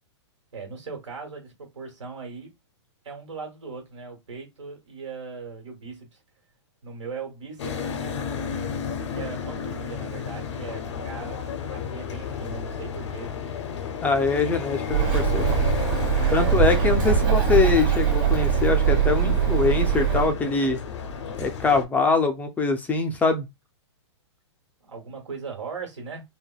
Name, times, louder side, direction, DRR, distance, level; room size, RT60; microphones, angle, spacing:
voice 1, 0.5-2.5 3.0-6.2 6.8-8.6 9.1-11.4 11.7-13.3 16.0-16.6 17.0-17.5 24.8-26.2, right 5 dB, 85° right, 1.3 m, -39 dB
sound 1, 7.6-21.8, left 7 dB, 75° left, 0.6 m, -32 dB
voice 2, 14.0-15.5 16.3-20.8 21.4-23.5, left 4 dB, 10° left, 0.3 m, -23 dB
Bird, 14.9-20.3, right 8 dB, 45° right, 1.2 m, -22 dB
3.3 x 2.1 x 2.2 m
hypercardioid pair, 130°, 15 cm